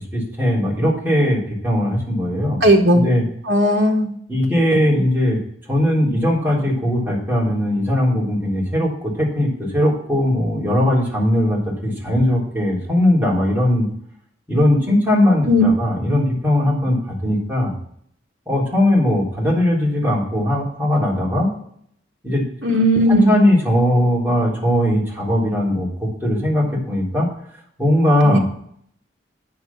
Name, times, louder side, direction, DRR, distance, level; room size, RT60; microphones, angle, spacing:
voice 1, 0.1-2.6 2.9-3.2 4.3-5.4 5.7-13.9 14.5-17.7 18.5-21.5 22.2-22.4 23.1-27.3 27.8-28.4, left 1 dB, 10° right, -5 dB, 3.7 m, -19 dB
voice 2, 2.6-3.0 3.5-4.1 15.5-15.6 22.6-23.4 28.2-28.4, equal, 60° right, -1 dB, 1.4 m, -15 dB
9.3 x 6.7 x 7.0 m, 0.66 s
head